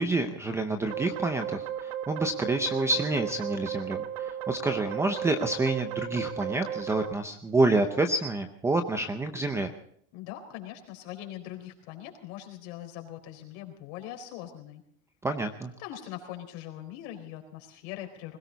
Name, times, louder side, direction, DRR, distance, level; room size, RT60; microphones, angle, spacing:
voice 1, 0.0-9.7 15.2-15.7, right 2 dB, 5° right, 7 dB, 0.6 m, -28 dB
sound 1, 0.9-7.1, right 10 dB, 80° right, 1.5 m, -35 dB
voice 2, 10.1-14.8 15.8-18.4, left 12 dB, 55° left, 4 dB, 4.3 m, -41 dB
21.0 x 17.5 x 4.0 m, 0.65 s
supercardioid pair, 175°, 39 cm